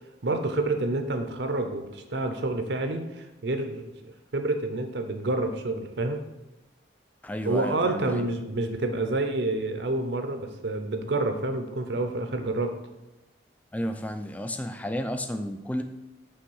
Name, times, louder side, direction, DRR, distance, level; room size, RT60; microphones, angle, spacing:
voice 1, 0.2-6.2 7.4-12.8, right 2 dB, 70° right, 6 dB, 0.6 m, -28 dB
voice 2, 7.2-8.3 13.7-15.8, equal, 10° left, 7 dB, 0.3 m, -32 dB
5.5 x 3.5 x 5.5 m, 1.0 s
head